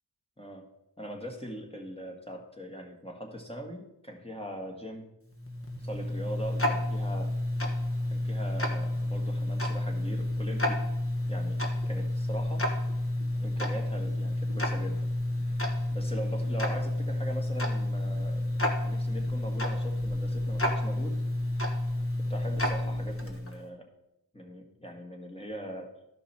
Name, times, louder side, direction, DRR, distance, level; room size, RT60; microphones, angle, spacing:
voice 1, 0.4-0.7 1.0-5.1 5.8-7.4 8.1-10.9 11.3-11.6 11.9-12.7 13.4-15.1 15.5-18.5 18.8-21.2 22.2-23.9 24.3-25.9, equal, 15° left, 1 dB, 1.8 m, -41 dB
Tick-tock, 5.3-23.6, left 1 dB, 30° left, 1.4 m, -30 dB
13.0 x 5.4 x 4.3 m, 0.87 s
wide cardioid pair, 55°, 43 cm